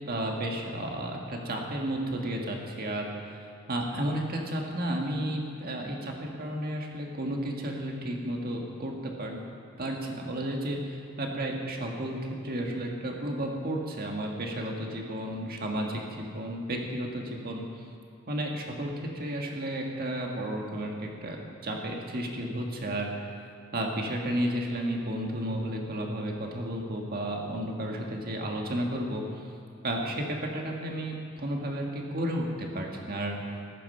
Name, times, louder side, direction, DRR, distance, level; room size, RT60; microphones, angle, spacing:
voice 1, 0.1-3.1 3.7-9.4 9.8-10.8 11.2-12.2 12.4-17.6 18.3-21.4 21.6-23.1 23.7-29.2 29.8-33.4, right 1 dB, 45° right, 1 dB, 1.7 m, -32 dB
14.0 x 11.0 x 5.6 m, 2.3 s
head